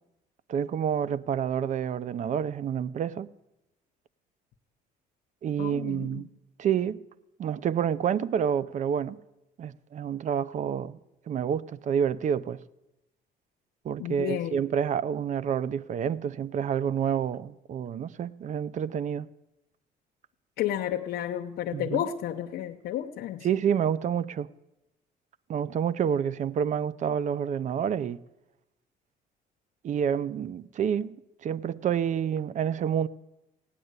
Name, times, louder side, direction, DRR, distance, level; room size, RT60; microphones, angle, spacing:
voice 1, 0.5-3.3 5.4-6.3 6.6-7.0 7.4-9.2 9.6-11.0 11.3-12.6 13.8-19.3 21.7-22.0 23.4-24.5 25.5-28.2 29.8-33.1, right 8 dB, 45° right, 0.6 m, -28 dB
voice 2, 5.6-6.2 14.0-14.6 20.6-23.5, left 11 dB, 75° left, 0.8 m, -32 dB
16.5 x 10.0 x 8.1 m
cardioid pair, 110°, 17 cm